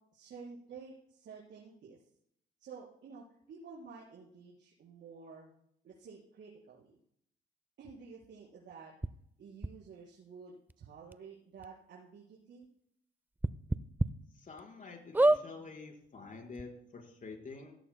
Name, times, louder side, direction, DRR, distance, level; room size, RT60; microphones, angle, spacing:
voice 1, 0.1-2.0 2.6-5.5 5.8-7.0 7.8-8.9 9.4-12.7, right 5 dB, 65° right, -6 dB, 4.6 m, -51 dB
sound 1, 9.0-9.1 9.6-9.7 10.7-10.8 11.1-11.2 11.6-11.7 13.4-14.1 14.6-14.7 15.1-15.4 16.3-16.4 16.5-16.6, right 2 dB, 10° right, 0.5 m, -26 dB
voice 2, 14.3-17.7, left 4 dB, 40° left, 1 dB, 4.8 m, -48 dB
17.0 x 16.0 x 2.2 m, 0.71 s
cardioid pair, 90°, 20 cm